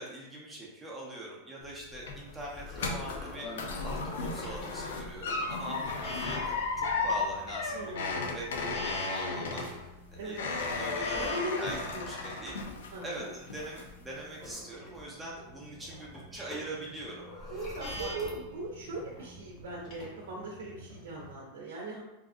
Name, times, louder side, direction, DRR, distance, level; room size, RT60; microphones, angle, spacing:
voice 1, 0.0-3.5 3.8-7.9 8.3-9.6 10.1-11.3 11.6-11.8 12.1-12.7 13.0-17.3 17.9-18.1, right 1 dB, 10° right, -5 dB, 0.8 m, -42 dB
sound 1, 1.6-13.2 13.5-14.0 14.4-14.5, left 3 dB, 85° left, 0.5 m, -34 dB
sound 2, 2.0-20.0, left 2 dB, 25° left, 1.0 m, -52 dB
sound 3, 3.2-21.3, left 1 dB, 45° left, 1.1 m, -48 dB
voice 2, 7.7-8.2 10.1-10.4 11.1-11.6 11.9-12.1 12.9-13.3 17.5-22.0, right 2 dB, 80° right, -2 dB, 0.7 m, -39 dB
3.6 x 2.7 x 2.5 m, 0.97 s
supercardioid pair, 130°, 0 cm